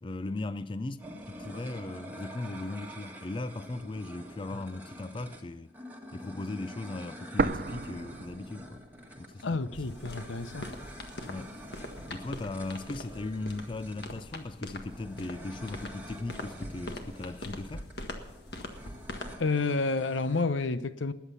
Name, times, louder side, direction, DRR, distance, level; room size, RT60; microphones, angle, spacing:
voice 1, 0.0-5.7 6.1-8.8 9.2-9.6 11.2-11.6 12.1-17.9, left 2 dB, 25° left, 0.4 m, -38 dB
sound 1, 1.0-20.4, equal, 10° right, 1.6 m, -48 dB
sound 2, 7.4-9.3 9.6-9.7 10.4-11.4, right 3 dB, 50° right, 0.5 m, -33 dB
voice 2, 9.4-10.7 19.4-21.1, left 3 dB, 85° left, 0.8 m, -30 dB
sound 3, 9.7-19.4, left 1 dB, 60° left, 1.6 m, -43 dB
20.5 x 8.2 x 5.5 m
head